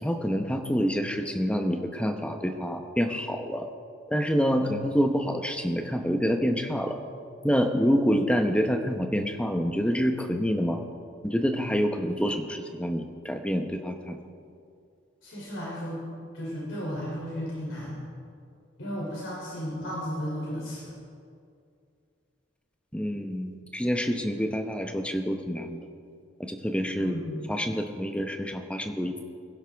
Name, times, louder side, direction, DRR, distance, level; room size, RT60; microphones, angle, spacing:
voice 1, 0.0-3.7 4.1-7.0 7.4-10.8 11.2-14.2 22.9-25.8 26.4-27.1 27.5-29.2, equal, 5° left, 5 dB, 0.8 m, -27 dB
voice 2, 15.2-16.0 16.3-18.0 18.8-20.9 27.0-27.4, equal, 75° left, -5 dB, 3.1 m, -34 dB
21.5 x 11.5 x 3.5 m, 2.4 s
head